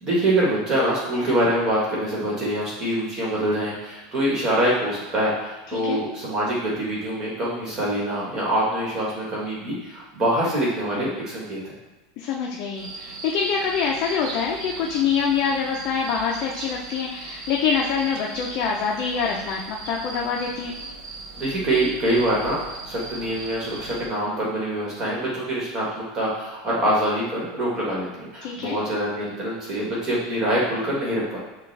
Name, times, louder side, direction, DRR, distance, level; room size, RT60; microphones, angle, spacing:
voice 1, 0.0-11.6 21.3-22.6 22.8-31.4, right 1 dB, 25° right, -5 dB, 1.3 m, -25 dB
voice 2, 12.2-20.7 28.4-28.8, left 6 dB, 40° left, -1 dB, 0.5 m, -25 dB
sound 1, 12.7-24.1, right 3 dB, 85° right, 0.7 m, -38 dB
6.7 x 2.3 x 3.3 m, 1.2 s
supercardioid pair, 165°, 2 cm